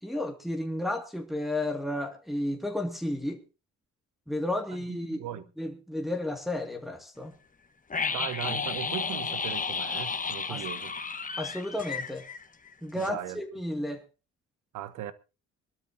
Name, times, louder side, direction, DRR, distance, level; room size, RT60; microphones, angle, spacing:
voice 1, 0.0-3.4 4.3-5.2 5.6-7.3 10.5-10.6 11.4-12.3 12.8-14.0, left 1 dB, ahead, 2.2 m, -32 dB
voice 2, 4.9-5.4 8.1-10.9 12.9-13.4 14.7-15.1, right 11 dB, 85° right, 1.1 m, -38 dB
sound 1, 7.9-12.7 13.0-13.1, left 5 dB, 25° left, 1.3 m, -33 dB
24.5 x 12.5 x 2.8 m
cardioid pair, 90°, 30 cm